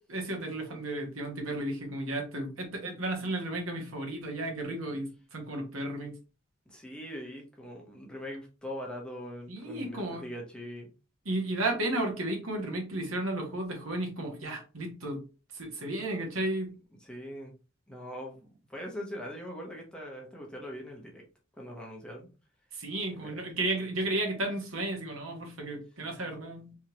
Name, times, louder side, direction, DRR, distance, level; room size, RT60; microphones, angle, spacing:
voice 1, 0.1-6.1 9.5-10.3 11.2-15.2 15.5-16.7 22.7-26.8, right 1 dB, 90° right, 2 dB, 1.4 m, -33 dB
voice 2, 6.7-10.9 17.0-17.5 17.9-21.2 21.6-22.3 23.1-23.4, equal, 5° left, -1 dB, 1.0 m, -42 dB
3.6 x 3.2 x 2.9 m, 0.32 s
head